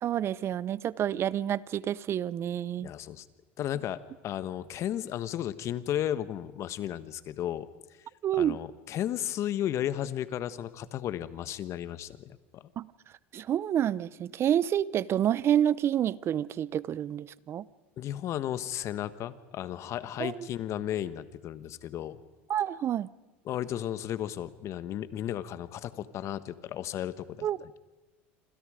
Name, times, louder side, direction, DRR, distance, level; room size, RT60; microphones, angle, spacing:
voice 1, 0.0-2.9 8.2-8.6 12.8-12.9 13.3-17.6 20.2-20.3 22.5-23.1 27.4-27.6, right 10 dB, 40° right, 20 dB, 0.8 m, -28 dB
voice 2, 2.8-3.3 3.6-7.7 8.0-8.1 8.4-12.7 18.0-22.2 23.4-27.8, left 11 dB, 50° left, 14 dB, 1.4 m, -34 dB
27.5 x 26.5 x 5.1 m, 1.2 s
supercardioid pair, 95°, 6 cm